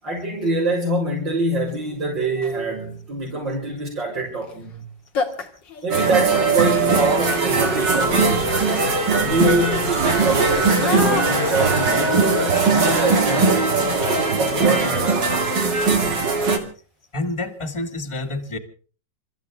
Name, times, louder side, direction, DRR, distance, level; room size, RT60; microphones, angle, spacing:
voice 1, 0.0-4.9 5.8-8.8 9.2-12.3 12.7-13.6 14.4-15.4, right 2 dB, 90° right, 6.5 m, -25 dB
sound 1, 1.7-1.8 2.3-2.7 4.4-4.6 4.8-4.9 5.1-14.0, left 5 dB, 80° left, 2.9 m, -33 dB
sound 2, 5.9-16.6, right 4 dB, 75° right, 3.3 m, -20 dB
voice 2, 17.1-18.6, left 2 dB, 15° left, 2.0 m, -28 dB
28.5 x 14.5 x 3.5 m
omnidirectional pair, 2.0 m